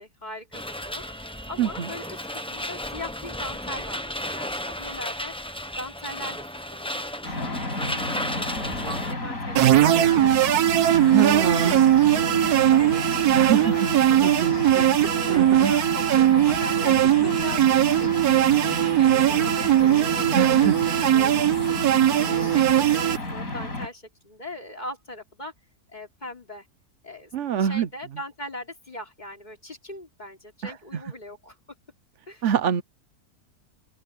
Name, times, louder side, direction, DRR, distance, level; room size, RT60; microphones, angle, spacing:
voice 1, 0.0-10.6 11.0-25.5 25.9-26.7 27.0-27.3 27.6-31.6 32.3-32.5, left 1 dB, 25° left, 3.5 m, -40 dB
sound 1, 0.5-9.1, left 1 dB, 5° left, 0.9 m, -34 dB
voice 2, 1.6-1.9 10.9-11.7 13.3-13.8 14.2-14.5 15.3-15.7 20.4-20.7 27.3-27.9 30.6-30.7 32.4-32.8, right 8 dB, 55° right, 1.0 m, -24 dB
sound 2, 7.2-23.9, left 1 dB, 60° left, 6.3 m, -32 dB
sound 3, 9.5-23.2, right 12 dB, 75° right, 1.4 m, -20 dB
open air
omnidirectional pair, 1.7 m